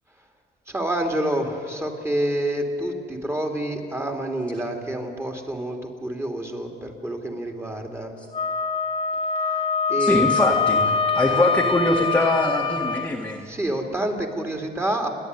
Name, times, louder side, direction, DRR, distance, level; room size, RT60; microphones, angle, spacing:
voice 1, 0.7-8.1 9.5-9.6 9.9-10.3 11.3-11.4 13.4-15.1, right 1 dB, 15° right, 3 dB, 2.8 m, -28 dB
Wind instrument woodwind instrument, 8.3-13.1, left 5 dB, 35° left, 0.8 m, -24 dB
voice 2, 10.0-13.4, left 1 dB, 10° left, -1 dB, 1.7 m, -23 dB
29.5 x 10.5 x 9.7 m, 2.2 s
cardioid pair, 110°, 17 cm